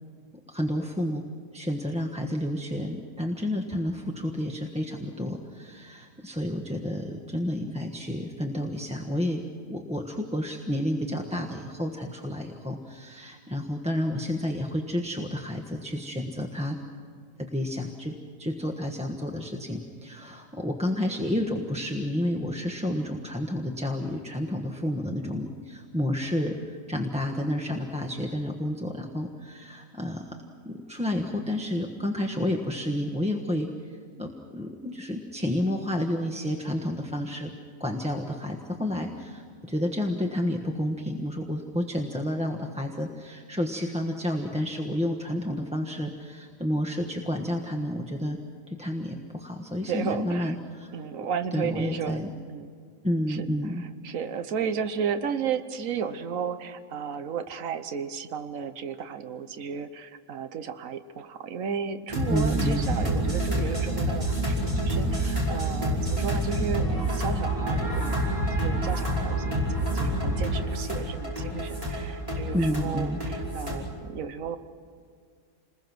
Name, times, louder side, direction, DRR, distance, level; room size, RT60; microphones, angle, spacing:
voice 1, 0.5-1.2 1.5-16.8 17.4-18.1 18.4-30.4 30.6-33.7 34.1-37.5 37.8-48.4 48.7-51.0 51.5-52.3 53.0-53.8 62.3-63.0 72.5-73.2, left 1 dB, 5° right, 2 dB, 1.3 m, -30 dB
voice 2, 49.9-50.6 50.9-52.2 52.5-52.7 53.3-53.5 53.8-68.3 68.6-74.6, right 7 dB, 75° right, 10 dB, 1.4 m, -33 dB
sound 1, 62.1-73.8, right 1 dB, 25° right, 5.6 m, -27 dB
28.5 x 21.0 x 6.2 m, 2.1 s
omnidirectional pair, 1.4 m